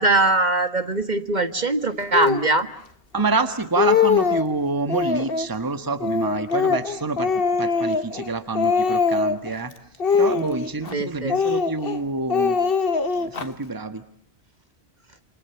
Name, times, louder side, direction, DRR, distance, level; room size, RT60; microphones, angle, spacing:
voice 1, 0.0-2.7 10.9-11.4, right 2 dB, 40° right, 9 dB, 1.8 m, -21 dB
Speech, 2.1-2.5 3.2-3.3 3.6-4.5 4.9-5.5 6.0-8.3 8.6-9.5 10.0-10.9 11.3-12.0 12.3-13.5, left 5 dB, 55° left, 1.7 m, -22 dB
voice 2, 3.1-7.3 7.6-9.7 10.1-12.6 13.1-14.0, right 3 dB, 20° right, 9 dB, 1.5 m, -27 dB
29.0 x 27.5 x 7.1 m, 0.65 s
omnidirectional pair, 1.2 m